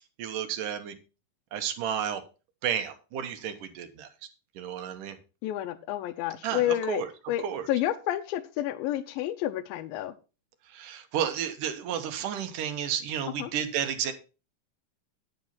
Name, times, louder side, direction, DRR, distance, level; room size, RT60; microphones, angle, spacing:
voice 1, 0.2-1.0 1.5-2.2 2.6-4.1 4.6-5.2 6.4-7.1 7.4-7.7 10.7-14.1, right 9 dB, 65° right, 8 dB, 2.4 m, -32 dB
voice 2, 5.4-7.0 7.3-10.1 13.4-13.5, left 13 dB, 80° left, 8 dB, 2.3 m, -30 dB
10.5 x 7.9 x 4.3 m, 0.32 s
omnidirectional pair, 4.4 m